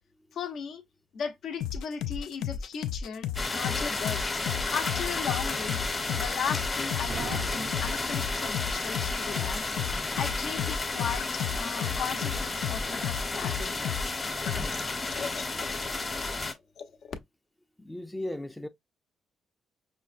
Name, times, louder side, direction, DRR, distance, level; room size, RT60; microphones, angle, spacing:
voice 1, 0.3-0.8 1.1-4.2 4.7-5.8 6.2-9.6 10.1-13.8 14.6-15.4 15.7-17.1, left 7 dB, 65° left, 0.9 m, -37 dB
sound 1, 1.6-14.2 14.5-14.7, left 9 dB, 90° left, 0.3 m, -33 dB
sound 2, 3.4-16.5, left 3 dB, 25° left, 1.0 m, -32 dB
sound 3, 7.1-9.0, right 7 dB, 65° right, 0.4 m, -40 dB
voice 2, 17.8-18.7, left 1 dB, 10° left, 0.4 m, -36 dB
5.3 x 2.2 x 2.5 m
cardioid pair, 90°, 0 cm